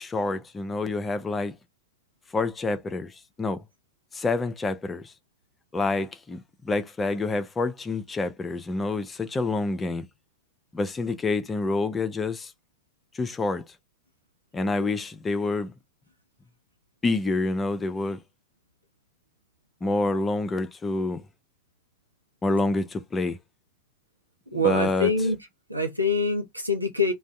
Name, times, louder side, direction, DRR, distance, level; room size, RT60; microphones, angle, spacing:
voice 1, 0.0-1.5 2.3-3.6 4.1-5.1 5.7-10.0 10.7-12.5 13.1-13.6 14.5-15.7 17.0-18.2 19.8-21.2 22.4-23.4 24.5-25.3, left 3 dB, 15° left, 0.5 m, -27 dB
voice 2, 24.5-25.4 25.7-27.1, left 2 dB, 85° right, 0.7 m, -25 dB
2.6 x 2.3 x 3.2 m
figure-of-eight pair, 90°, 0 cm